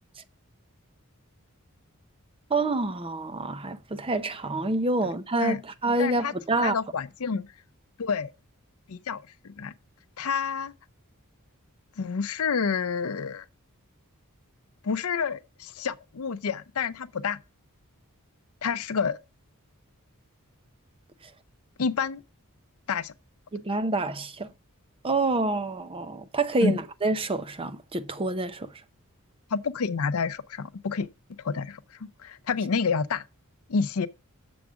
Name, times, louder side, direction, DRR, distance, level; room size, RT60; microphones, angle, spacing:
voice 1, 2.5-6.8 23.5-24.5 25.0-28.7, right 2 dB, 25° right, 0.6 m, -27 dB
voice 2, 6.0-6.3 6.6-7.5 8.0-8.3 8.9-9.7 10.2-10.7 12.0-13.5 14.8-17.4 18.6-19.2 21.8-22.2 22.9-23.1 26.6-26.8 29.5-31.1 31.4-33.2 33.7-34.1, left 5 dB, 70° left, 0.6 m, -29 dB
7.0 x 4.9 x 6.2 m
head